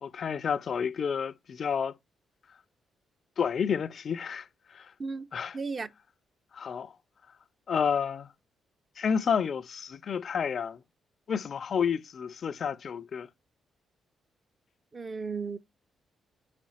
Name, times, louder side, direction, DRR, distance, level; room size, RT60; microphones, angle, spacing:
voice 1, 0.0-1.9 3.4-4.9 5.3-5.5 6.5-6.9 7.7-8.3 9.0-10.8 11.3-13.3, left 7 dB, 55° left, 0.4 m, -30 dB
voice 2, 5.5-5.9 14.9-15.6, right 4 dB, 40° right, 0.6 m, -34 dB
4.3 x 4.1 x 2.8 m
hypercardioid pair, 40°, 0 cm